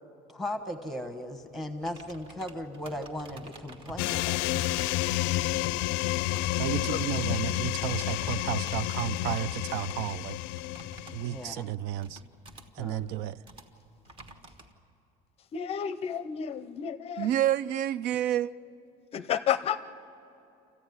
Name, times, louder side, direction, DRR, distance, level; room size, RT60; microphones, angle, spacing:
voice 1, 0.3-4.4 11.3-11.7 12.8-13.0, left 1 dB, ahead, 6 dB, 1.2 m, -37 dB
sound 1, 0.5-14.7, right 2 dB, 30° right, 1.3 m, -51 dB
sound 2, 4.0-11.5, left 18 dB, 85° left, 0.4 m, -30 dB
voice 2, 6.6-10.4 11.1-12.2 12.8-13.4 17.2-18.5, right 12 dB, 70° right, 17 dB, 0.5 m, -31 dB
voice 3, 15.5-17.3 19.1-19.8, left 9 dB, 35° left, 14 dB, 0.5 m, -31 dB
26.5 x 14.5 x 9.5 m, 2.8 s
cardioid pair, 170°, 18 cm